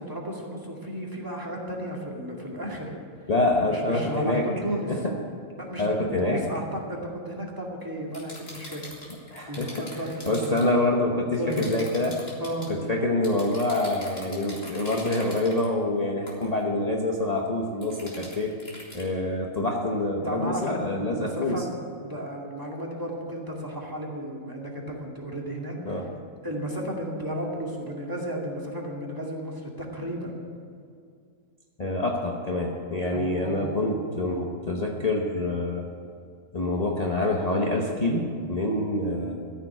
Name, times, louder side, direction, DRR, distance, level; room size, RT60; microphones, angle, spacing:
voice 1, 0.0-3.0 3.7-5.0 5.6-6.6 6.9-8.9 9.4-10.6 11.4-11.6 12.4-12.7 20.2-20.8 21.1-21.7 22.0-26.0 26.4-30.4 33.1-34.0, equal, 15° right, -3 dB, 2.3 m, -34 dB
voice 2, 3.3-4.5 4.9-5.2 5.8-6.5 9.3-9.9 10.3-12.2 12.7-18.5 18.9-21.6 25.8-26.1 31.8-35.8 36.5-39.4, left 2 dB, 30° left, -1 dB, 1.1 m, -26 dB
sound 1, 8.1-10.7 11.5-12.7 13.2-15.7 16.3-16.5 17.8-19.1, left 1 dB, 50° left, 2.9 m, -43 dB
14.0 x 7.2 x 10.0 m, 2.2 s
omnidirectional pair, 1.3 m